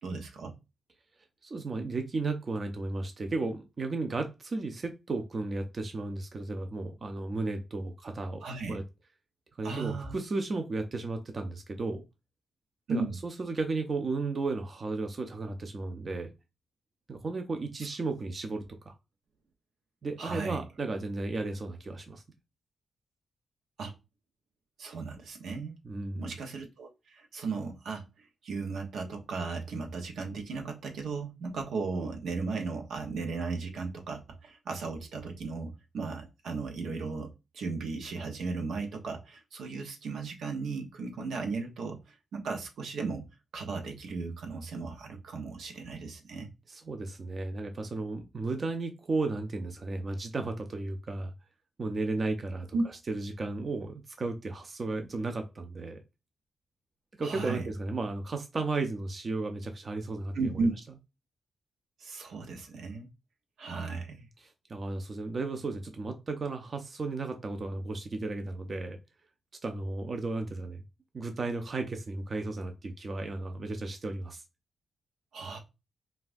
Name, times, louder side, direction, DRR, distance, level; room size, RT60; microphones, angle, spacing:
voice 1, 0.0-0.5 8.4-8.8 9.6-10.2 12.9-13.2 20.2-20.6 23.8-23.9 24.8-25.8 26.1-37.3 37.5-43.2 43.5-46.5 52.7-52.8 57.2-57.7 60.3-60.7 62.0-63.1 63.6-64.3 75.3-75.6, right 4 dB, 85° right, 3 dB, 0.9 m, -35 dB
voice 2, 1.4-8.8 9.6-12.0 12.9-16.3 17.1-18.9 20.0-22.2 25.8-26.3 46.7-51.3 51.8-52.7 53.1-56.0 57.2-60.5 64.7-69.0 69.6-70.8 71.1-74.4, right 3 dB, 40° right, 5 dB, 0.6 m, -34 dB
5.4 x 2.4 x 2.5 m, 0.26 s
cardioid pair, 95°, 0 cm